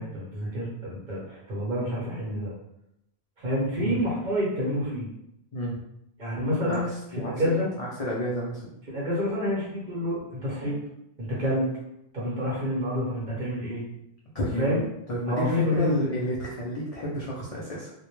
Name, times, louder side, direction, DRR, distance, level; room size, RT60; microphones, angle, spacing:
voice 1, 0.0-2.5 3.4-5.1 6.2-7.7 8.9-10.8 11.2-11.7 12.1-13.8 14.6-14.8 15.3-16.1, left 1 dB, 45° right, -5 dB, 0.8 m, -28 dB
voice 2, 7.8-8.7 14.3-14.8 15.1-17.9, equal, 65° left, -5 dB, 0.3 m, -30 dB
2.1 x 2.1 x 3.0 m, 0.82 s
omnidirectional pair, 1.2 m